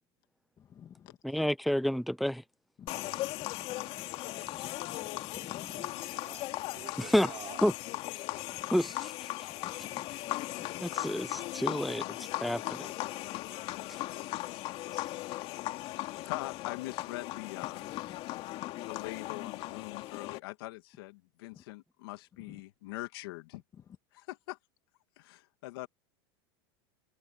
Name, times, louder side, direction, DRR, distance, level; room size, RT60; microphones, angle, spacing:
voice 1, 0.6-1.2 2.8-5.9 8.5-8.7 9.5-11.0 17.9-18.2 21.5-21.6 22.5-22.6, left 8 dB, 30° left, 2.3 m, -53 dB
voice 2, 1.2-2.4 7.0-7.3 7.6-7.7 8.7-9.3 10.8-12.9, equal, ahead, 0.5 m, -30 dB
sound 1, 2.9-20.4, left 17 dB, 50° left, 2.4 m, -38 dB
voice 3, 5.7-7.7 10.8-11.1 14.9-15.0, right 12 dB, 40° right, 3.5 m, -50 dB
voice 4, 15.9-17.9 18.8-23.6 24.1-24.6 25.2-25.9, left 20 dB, 75° left, 2.1 m, -43 dB
supercardioid pair, 120°, 12 cm